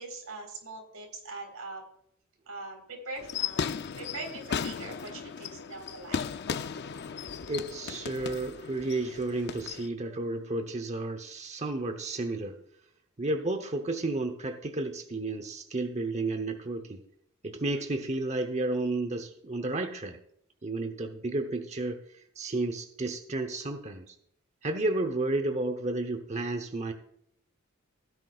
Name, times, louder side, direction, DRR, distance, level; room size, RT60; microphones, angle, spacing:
voice 1, 0.0-1.8 2.5-6.3, right 3 dB, 90° right, 3 dB, 4.1 m, -42 dB
sound 1, 3.2-9.9, left 6 dB, 50° left, 0.5 m, -36 dB
voice 2, 7.5-12.6 13.2-17.0 17.4-20.2 20.6-24.2 24.6-26.9, right 2 dB, 30° right, 6 dB, 0.8 m, -32 dB
16.5 x 10.5 x 2.4 m, 0.71 s
head